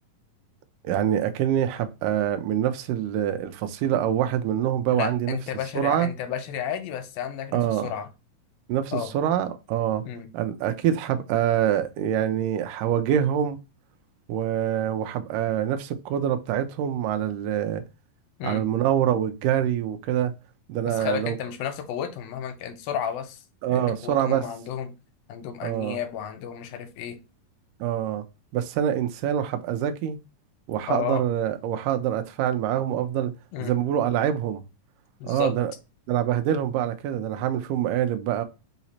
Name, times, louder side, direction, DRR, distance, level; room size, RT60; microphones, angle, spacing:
voice 1, 0.8-5.4 5.8-6.1 7.5-7.9 8.7-10.1 10.3-13.6 14.3-17.8 18.4-20.3 20.7-21.4 23.6-24.5 25.6-26.0 27.8-28.2 28.5-30.2 30.7-33.3 33.6-34.6 35.2-35.7 36.1-38.4, right 10 dB, 80° right, 2.0 m, -25 dB
voice 2, 4.9-8.1 8.9-9.1 10.0-10.3 18.4-18.6 20.9-23.4 23.7-24.9 25.3-27.2 30.9-31.2 33.5-33.7 35.2-35.6, left 9 dB, 85° left, 2.5 m, -32 dB
5.7 x 2.0 x 4.1 m
omnidirectional pair, 4.0 m